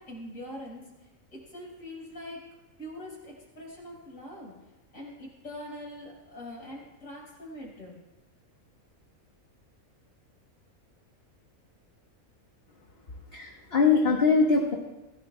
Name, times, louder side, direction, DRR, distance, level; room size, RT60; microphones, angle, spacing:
voice 1, 0.0-2.4 2.8-4.5 4.9-8.0, left 1 dB, 65° left, -4 dB, 5.3 m, -43 dB
voice 2, 13.3-14.8, left 4 dB, 45° left, 1 dB, 1.3 m, -22 dB
23.5 x 16.0 x 2.2 m, 1.0 s
omnidirectional pair, 1.5 m